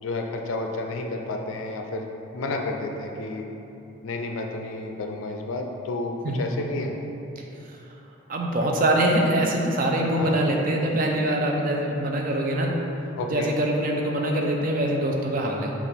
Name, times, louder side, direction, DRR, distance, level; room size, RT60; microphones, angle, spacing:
voice 1, 0.0-3.5 4.0-6.9 10.2-10.4 13.2-13.5, left 2 dB, 70° left, 2 dB, 0.4 m, -31 dB
voice 2, 8.3-12.8 13.3-15.7, right 1 dB, 40° right, 0 dB, 0.4 m, -24 dB
5.9 x 2.4 x 3.5 m, 3.0 s
head